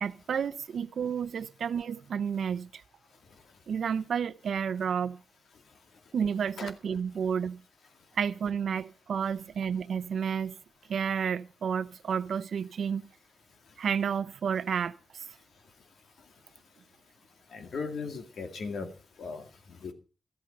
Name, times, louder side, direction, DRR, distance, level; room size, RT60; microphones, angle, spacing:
voice 1, 0.0-2.8 3.7-5.2 6.1-7.6 8.2-10.5 10.9-13.0 13.8-15.2 18.8-18.9, right 7 dB, 75° right, 0.7 m, -31 dB
voice 2, 17.5-18.9 19.2-19.4 19.8-19.9, left 4 dB, 75° left, 2.2 m, -36 dB
14.0 x 12.0 x 5.3 m
wide cardioid pair, 175°, 0 cm